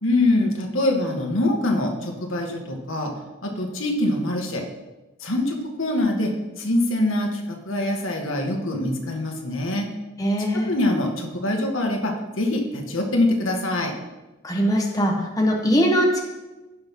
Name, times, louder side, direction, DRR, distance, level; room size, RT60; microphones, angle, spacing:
voice 1, 0.0-3.1 3.4-4.6 5.2-6.3 6.6-9.9 10.5-13.9, left 1 dB, 80° left, 1 dB, 1.8 m, -24 dB
voice 2, 10.2-10.7 14.4-16.2, equal, 15° left, -1 dB, 1.3 m, -21 dB
16.5 x 6.0 x 3.7 m, 1.1 s
head